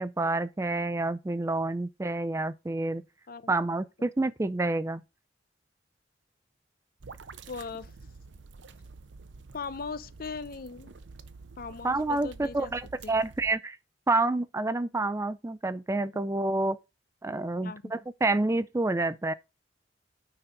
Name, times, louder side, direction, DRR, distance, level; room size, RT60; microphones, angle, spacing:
voice 1, 0.0-3.0 3.5-5.0 11.8-13.8 14.1-16.8 17.2-19.3, right 2 dB, 15° right, 0.4 m, -28 dB
sound 1, 7.0-13.5, right 4 dB, 75° right, 0.7 m, -49 dB
voice 2, 7.5-7.9 9.5-10.9 11.6-12.7 13.0-13.2 17.6-17.9, left 4 dB, 55° left, 0.7 m, -39 dB
9.7 x 4.2 x 5.1 m
head